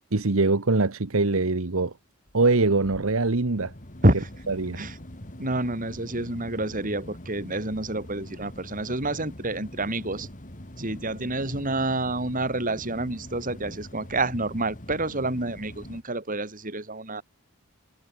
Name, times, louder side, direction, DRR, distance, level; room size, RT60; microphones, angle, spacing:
voice 1, 0.1-1.9 2.3-3.7 4.5-4.8, right 3 dB, 75° right, 1.2 m, -23 dB
sound 1, 2.3-16.0, left 1 dB, 35° left, 3.3 m, -43 dB
voice 2, 5.4-10.3 10.8-17.2, right 2 dB, 40° right, 5.2 m, -28 dB
head